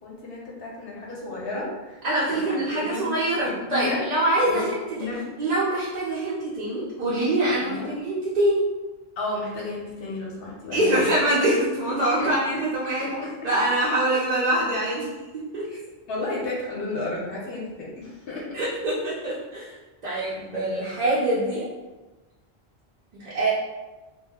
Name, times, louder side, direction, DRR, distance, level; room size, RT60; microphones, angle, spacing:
voice 1, 0.0-2.0 2.3-3.0 3.4-4.1 4.5-4.6 4.9-5.3 7.6-7.9 9.2-11.1 12.2-12.6 13.0-13.3 15.7-15.8 16.1-18.4, left 2 dB, 70° left, -4 dB, 0.9 m, -32 dB
voice 2, 2.0-4.8 5.4-8.6 10.7-13.2 13.4-15.1 15.5-15.6 18.5-19.7 20.0-21.6 23.2-23.5, right 1 dB, 50° right, -8 dB, 0.6 m, -24 dB
2.2 x 2.0 x 3.4 m, 1.1 s
omnidirectional pair, 1.0 m